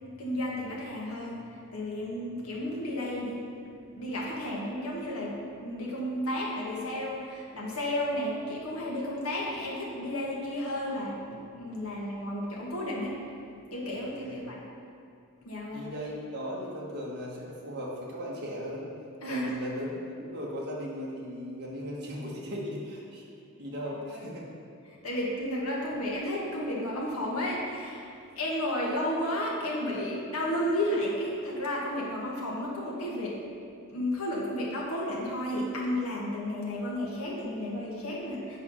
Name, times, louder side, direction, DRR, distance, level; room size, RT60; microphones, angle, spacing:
voice 1, 0.2-1.4 1.7-3.4 3.9-5.4 5.6-13.2 13.7-14.6 15.5-15.9 19.2-19.5 24.1-24.2 25.0-28.1 28.4-33.4 33.9-38.6, left 1 dB, 75° left, -4 dB, 1.8 m, -32 dB
voice 2, 15.7-18.9 19.2-23.2 23.6-24.5, equal, 50° right, -5 dB, 1.5 m, -37 dB
8.3 x 4.9 x 5.6 m, 2.4 s
head